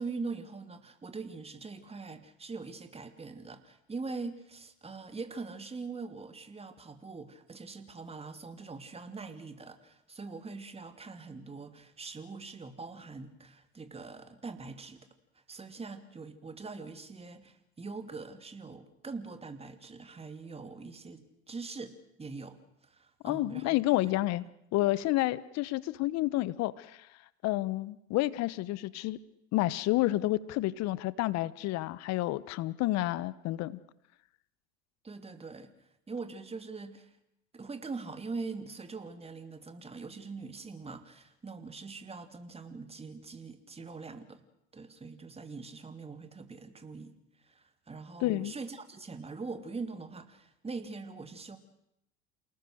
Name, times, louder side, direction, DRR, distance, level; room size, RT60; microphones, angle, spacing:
voice 1, 0.0-15.1 15.5-24.1 35.0-35.7 36.1-37.1 37.5-44.4 44.7-47.1 47.4-51.6, right 4 dB, 20° right, 9 dB, 2.8 m, -43 dB
voice 2, 23.2-24.5 24.7-27.1 27.4-29.2 29.5-33.8 48.2-48.5, left 17 dB, 55° left, 19 dB, 1.1 m, -30 dB
28.5 x 19.0 x 6.5 m, 0.80 s
hypercardioid pair, 80°, 31 cm